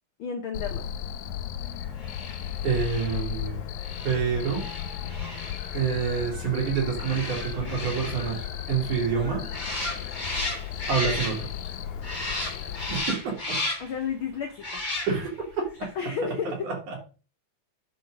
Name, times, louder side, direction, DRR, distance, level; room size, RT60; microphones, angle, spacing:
voice 1, 0.2-0.8 13.8-14.6 14.9-15.1 15.9-16.5, left 7 dB, 60° left, 3 dB, 1.4 m, -31 dB
Cricket, 0.5-13.0, left 10 dB, 75° left, 2.1 m, -35 dB
sound 1, 2.0-11.7 12.0-14.0 14.6-15.4 15.8-15.9, left 2 dB, 15° left, 3.0 m, -35 dB
voice 2, 2.6-3.6 4.0-4.6 5.7-8.4 8.7-9.5 10.9-11.5 12.9-13.6 15.1-15.6 16.6-17.0, right 6 dB, 80° right, -1 dB, 4.4 m, -27 dB
10.0 x 4.5 x 6.2 m, 0.36 s
omnidirectional pair, 3.4 m